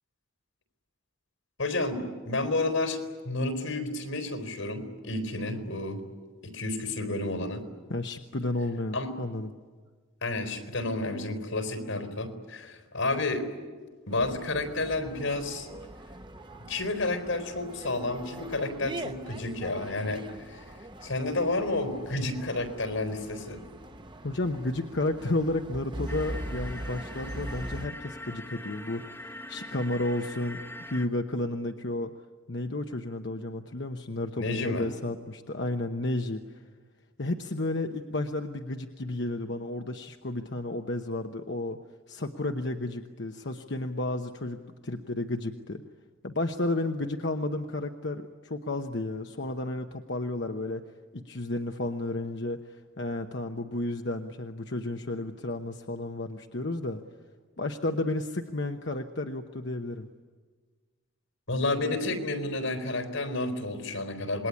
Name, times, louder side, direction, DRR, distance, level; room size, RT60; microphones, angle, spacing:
voice 1, 1.6-6.0 6.4-7.6 8.9-9.1 10.2-13.5 14.1-15.7 16.7-20.2 20.5-20.6 21.0-23.6 34.4-34.9 61.5-64.5, left 2 dB, 80° left, 8 dB, 4.3 m, -30 dB
voice 2, 7.9-9.5 24.2-32.1 32.5-36.6 37.2-41.8 42.1-45.8 46.2-50.8 51.1-57.0 57.6-60.1, left 2 dB, 55° left, 5 dB, 1.0 m, -32 dB
sound 1, 14.1-27.9, right 1 dB, 25° right, 1.0 m, -42 dB
sound 2, 26.1-31.1, left 1 dB, 10° left, 1.1 m, -43 dB
27.0 x 21.5 x 9.7 m, 1.5 s
head